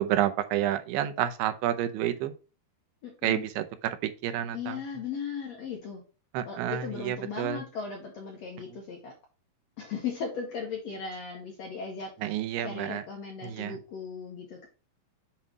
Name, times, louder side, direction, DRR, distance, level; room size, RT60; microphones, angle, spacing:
voice 1, 0.0-2.3 3.2-4.8 6.3-7.6 12.2-13.0 13.4-13.8, right 11 dB, 85° right, 2.7 m, -29 dB
voice 2, 3.0-3.4 4.5-6.0 6.4-9.1 9.8-14.7, left 6 dB, 65° left, 1.7 m, -37 dB
7.4 x 3.2 x 5.0 m
omnidirectional pair, 4.5 m